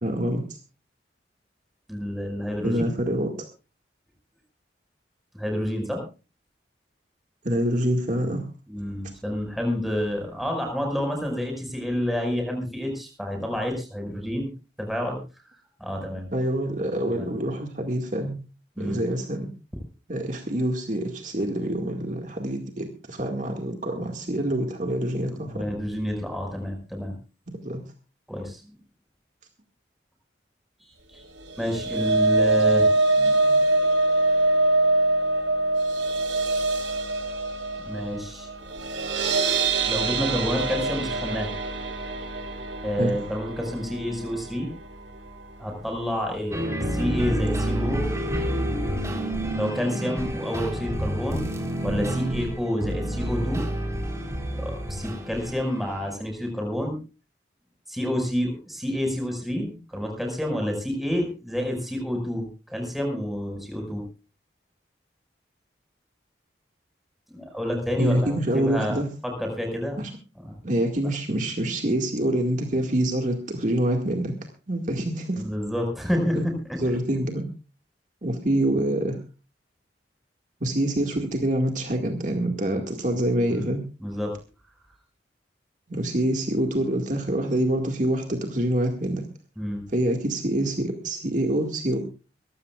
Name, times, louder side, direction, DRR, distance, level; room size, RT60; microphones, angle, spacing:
voice 1, 0.0-0.6 2.6-3.3 7.4-8.5 16.3-18.4 18.8-19.5 20.1-25.7 27.5-27.9 43.0-43.2 68.0-69.1 70.0-70.1 70.6-74.4 74.7-75.4 76.4-76.5 76.8-77.5 78.2-79.2 80.6-83.8 85.9-89.2 89.9-92.0, right 1 dB, 45° right, 3 dB, 2.0 m, -26 dB
voice 2, 1.9-2.9 5.3-6.0 8.7-14.5 14.8-15.2 15.8-16.3 17.1-17.3 18.8-19.0 25.3-27.1 28.3-28.8 30.9-31.2 31.6-33.6 37.8-38.5 39.9-41.5 42.8-44.7 45.6-46.6 46.9-48.1 49.5-51.5 51.8-53.7 54.6-57.0 57.9-64.0 67.3-69.0 69.2-70.0 70.4-70.6 75.3-76.4 76.7-76.8 83.5-83.7 84.0-84.3 89.6-89.8, equal, ahead, 2 dB, 5.6 m, -29 dB
sound 1, 31.4-45.6 46.0-46.2 46.5-46.6, right 2 dB, 90° right, 3.1 m, -24 dB
sound 2, 46.5-56.1, right 1 dB, 15° right, 3.9 m, -29 dB
24.0 x 15.0 x 2.5 m, 0.33 s
head